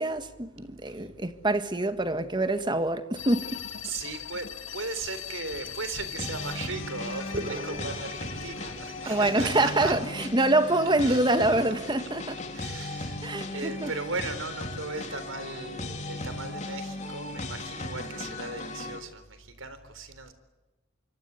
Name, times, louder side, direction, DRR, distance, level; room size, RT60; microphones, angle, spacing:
voice 1, 0.0-3.5 9.0-12.4 13.2-13.9, right 2 dB, 25° right, 1.6 m, -25 dB
sound 1, 3.2-10.0, left 8 dB, 85° left, 2.0 m, -41 dB
voice 2, 3.8-4.5 4.7-9.9 11.0-11.2 12.5-13.2 13.5-20.3, right 3 dB, 80° right, 3.9 m, -37 dB
sound 2, 6.2-19.0, left 2 dB, 35° left, 3.6 m, -37 dB
sound 3, 7.3-9.3, right 1 dB, 45° right, 4.4 m, -39 dB
26.0 x 24.5 x 8.3 m
head